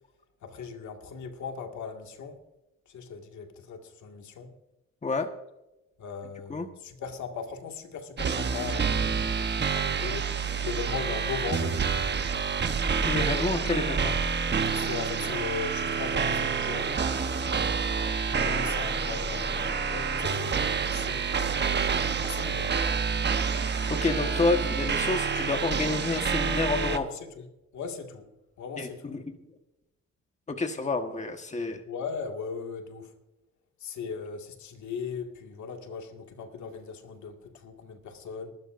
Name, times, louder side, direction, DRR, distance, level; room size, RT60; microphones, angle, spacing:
voice 1, 0.4-2.4 2.9-4.5 6.0-10.3 10.6-11.8 14.7-17.0 18.3-22.8 26.9-27.5 27.7-28.3 28.6-29.1 31.9-33.1 33.8-38.5, left 5 dB, 70° left, 2.1 m, -38 dB
sound 1, 8.2-27.0, right 5 dB, 35° right, 1.1 m, -28 dB
voice 2, 13.0-14.1 23.6-27.1 28.8-29.2 30.5-31.8, left 3 dB, 25° left, 1.4 m, -29 dB
23.5 x 12.5 x 2.6 m
cardioid pair, 90°, 30 cm